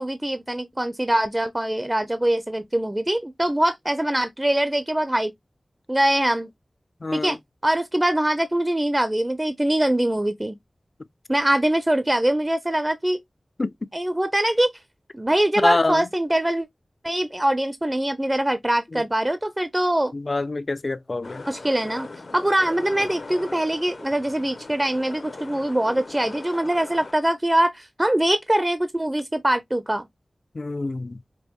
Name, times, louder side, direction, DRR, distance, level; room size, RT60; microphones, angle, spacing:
voice 1, 0.0-5.3 5.9-6.5 7.1-7.4 7.6-10.6 11.3-13.2 13.9-14.7 15.1-16.7 17.0-20.1 21.5-22.1 22.3-30.0, right 1 dB, 20° right, 0.5 m, -23 dB
voice 2, 7.0-7.4 13.6-13.7 15.6-16.0 18.9-19.0 20.1-21.4 30.6-31.2, left 2 dB, 50° left, 0.4 m, -25 dB
sound 1, 21.2-27.1, left 3 dB, 70° left, 0.9 m, -39 dB
5.2 x 2.1 x 2.8 m
wide cardioid pair, 75°, 0 cm